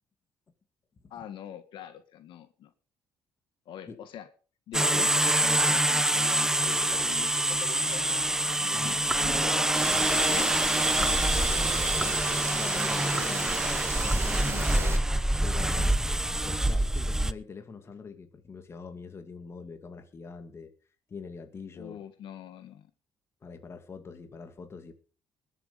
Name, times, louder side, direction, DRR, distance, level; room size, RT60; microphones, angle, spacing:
voice 1, 1.1-2.7 3.6-4.3 4.7-9.8 10.1-10.6 11.0-11.3 13.1-13.6 14.4-15.0 15.8-16.2 21.7-22.9, left 10 dB, 70° left, 9 dB, 1.7 m, -44 dB
sound 1, 4.7-17.3, right 1 dB, 5° right, 0.6 m, -26 dB
sound 2, 9.7-15.0, right 5 dB, 30° right, 1.6 m, -35 dB
voice 2, 12.5-13.7 14.0-15.0 15.4-15.9 16.4-20.7 21.1-22.0 23.4-24.9, left 5 dB, 30° left, 7 dB, 2.2 m, -44 dB
20.5 x 8.2 x 5.2 m, 0.39 s
cardioid pair, 135°, 8 cm